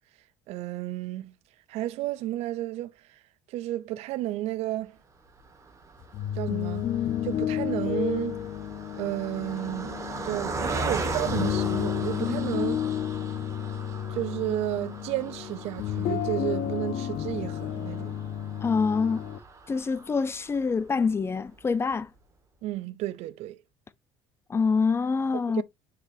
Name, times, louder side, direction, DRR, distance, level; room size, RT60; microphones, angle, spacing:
voice 1, 0.5-1.3 1.7-3.2 3.5-5.0 6.3-6.9 7.2-8.4 9.0-10.0 10.2-12.9 14.1-18.1 22.6-23.6 25.5-25.6, right 15 dB, 70° right, 0.6 m, -32 dB
Car passing by, 5.4-20.9 21.4-21.5 21.7-21.9, right 3 dB, 25° right, 1.7 m, -38 dB
sound 1, 6.0-19.4, left 10 dB, 55° left, 0.9 m, -31 dB
voice 2, 18.6-19.3 19.7-22.1 24.5-25.6, left 5 dB, 20° left, 0.7 m, -25 dB
6.7 x 5.1 x 2.7 m
cardioid pair, 120°, 11 cm